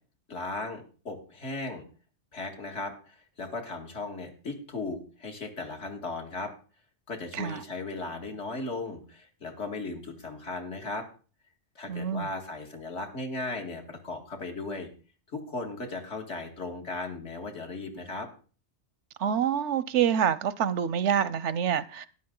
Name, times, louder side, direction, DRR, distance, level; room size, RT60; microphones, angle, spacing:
voice 1, 0.3-1.8 2.3-6.5 7.1-11.1 11.8-14.9 15.3-18.3, left 3 dB, 80° left, 2.4 m, -37 dB
voice 2, 11.9-12.3 19.2-22.1, right 8 dB, 90° right, 1.0 m, -26 dB
12.5 x 10.0 x 3.8 m
omnidirectional pair, 1.2 m